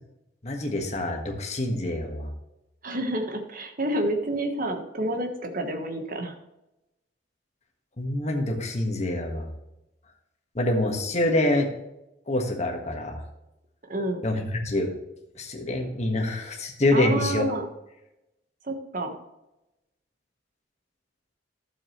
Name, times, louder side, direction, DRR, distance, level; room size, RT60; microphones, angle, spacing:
voice 1, 0.4-2.3 8.0-9.5 10.5-11.7 12.3-13.2 14.2-14.9 15.4-17.5, left 1 dB, 35° left, 2 dB, 1.5 m, -26 dB
voice 2, 2.8-6.3 13.9-14.2 16.9-17.7 18.6-19.1, right 1 dB, 45° right, 4 dB, 1.3 m, -29 dB
12.0 x 7.3 x 3.1 m, 0.92 s
head